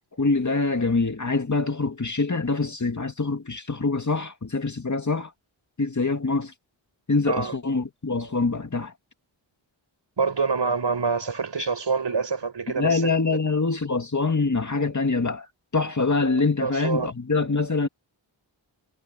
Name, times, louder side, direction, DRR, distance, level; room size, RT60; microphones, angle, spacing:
voice 1, 0.2-5.3 5.8-6.5 7.1-8.9 12.8-15.5 15.7-17.9, left 3 dB, 35° left, 2.2 m, -24 dB
voice 2, 10.2-13.1 16.6-17.1, right 4 dB, 60° right, 5.7 m, -26 dB
wide cardioid pair, 80°, 48 cm